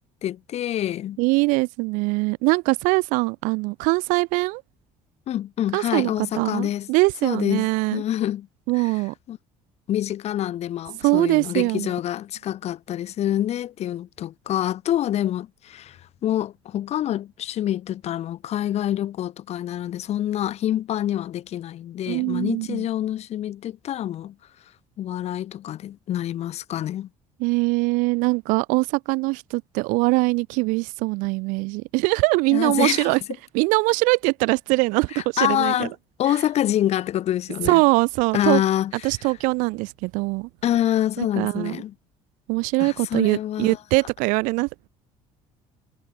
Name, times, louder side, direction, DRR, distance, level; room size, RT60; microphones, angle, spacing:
voice 1, 0.2-1.2 5.3-6.9 7.2-8.5 8.8-8.9 9.3-9.4 9.9-24.3 25.0-27.1 32.5-33.1 35.1-35.9 36.2-37.8 38.3-39.1 40.6-41.9 42.8-43.8, left 12 dB, 55° left, 2.6 m, -26 dB
voice 2, 1.2-4.6 5.7-8.0 8.7-9.1 11.0-11.9 22.1-22.9 27.4-33.2 33.5-35.9 37.6-38.6 39.0-40.5 41.2-41.8 42.5-44.9, right 27 dB, 85° right, 3.1 m, -22 dB
cardioid pair, 115°, 13 cm